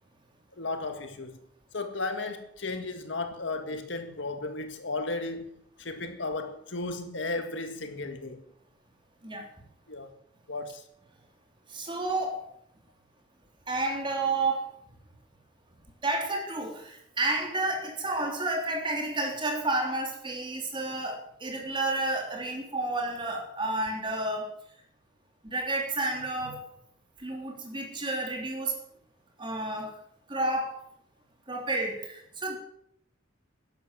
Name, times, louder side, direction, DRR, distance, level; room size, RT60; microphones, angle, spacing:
voice 1, 0.5-1.4 1.7-5.5 5.8-8.4 9.9-10.1 10.5-10.8, left 3 dB, 70° left, 1.9 m, -34 dB
voice 2, 11.7-12.5 13.7-14.7 16.0-24.5 25.4-26.6 27.2-28.8 29.4-29.9 30.3-30.8 31.5-32.6, right 2 dB, 25° right, 3.7 m, -30 dB
12.0 x 11.5 x 7.7 m
head